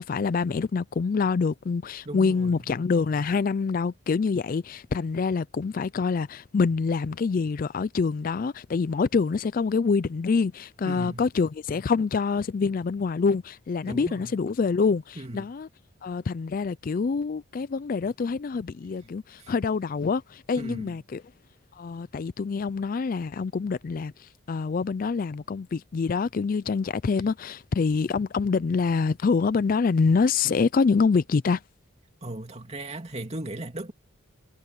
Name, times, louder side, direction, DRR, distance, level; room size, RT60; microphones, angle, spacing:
voice 1, 0.0-15.7 16.0-21.2 21.8-31.6, left 5 dB, 40° left, 0.3 m, -26 dB
voice 2, 2.0-2.7 10.8-11.3 13.8-14.4 15.2-15.5 19.4-19.5 20.6-21.0 32.2-33.9, right 1 dB, 30° right, 2.7 m, -37 dB
head